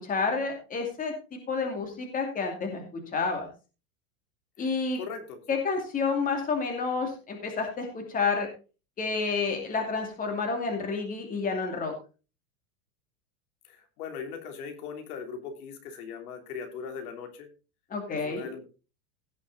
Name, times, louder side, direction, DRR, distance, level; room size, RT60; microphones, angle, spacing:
voice 1, 0.0-3.5 4.6-5.0 5.5-8.5 9.0-11.9 17.9-18.5, left 4 dB, 20° left, 3 dB, 2.5 m, -30 dB
voice 2, 5.0-5.6 13.7-17.5 18.1-18.8, left 6 dB, 70° left, 5 dB, 3.5 m, -40 dB
17.0 x 6.4 x 4.0 m, 0.33 s
supercardioid pair, 155°, 46 cm